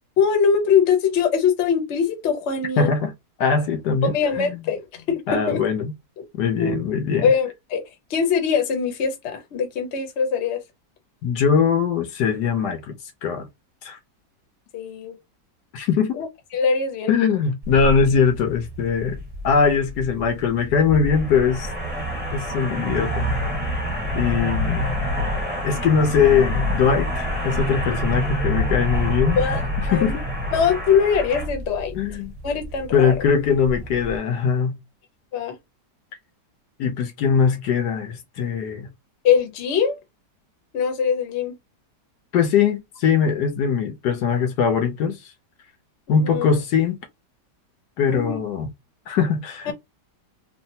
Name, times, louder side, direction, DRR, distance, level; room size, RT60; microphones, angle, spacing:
voice 1, 0.2-2.9 4.0-5.6 6.2-6.3 6.6-6.8 7.2-7.8 8.1-10.6 14.7-15.2 16.1-16.3 16.5-17.1 29.4-30.2 30.5-32.0 32.4-33.1 35.3-35.6 39.2-40.0 40.7-41.6 46.1-46.5 48.1-48.4 49.7-49.8, left 6 dB, 50° left, 0.9 m, -22 dB
voice 2, 2.8-3.1 3.4-4.6 5.3-5.9 6.4-7.3 11.2-13.0 13.2-13.5 13.8-14.0 15.7-16.2 17.1-19.2 19.4-21.7 22.3-23.6 24.1-25.0 25.6-29.4 29.9-30.2 31.9-32.3 32.9-34.8 36.8-38.9 42.3-45.2 46.1-47.0 48.0-48.7 49.1-49.7, left 6 dB, 75° left, 1.3 m, -21 dB
sound 1, 17.6-34.2, equal, 5° right, 0.9 m, -27 dB
3.2 x 2.3 x 2.7 m
omnidirectional pair, 1.8 m